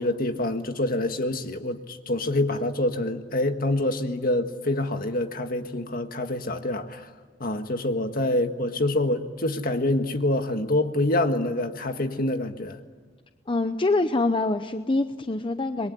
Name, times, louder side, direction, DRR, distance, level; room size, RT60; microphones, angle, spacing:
voice 1, 0.0-7.0 7.4-12.8, left 1 dB, 50° left, 1.7 m, -26 dB
voice 2, 13.5-15.9, left 2 dB, 30° left, 0.7 m, -25 dB
27.0 x 22.0 x 10.0 m
head